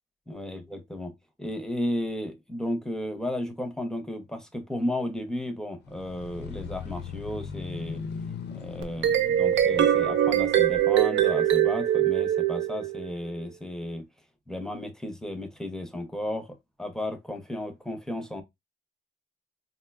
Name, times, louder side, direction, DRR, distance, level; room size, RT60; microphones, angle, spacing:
voice 1, 0.3-1.1 1.4-8.0 8.5-14.0 14.5-18.4, left 1 dB, 5° left, 0.7 m, -34 dB
sound 1, 5.9-10.8, left 6 dB, 60° left, 0.5 m, -39 dB
sound 2, 8.8-13.2, right 11 dB, 70° right, 0.6 m, -23 dB
3.8 x 2.2 x 2.3 m
cardioid pair, 90°, 20 cm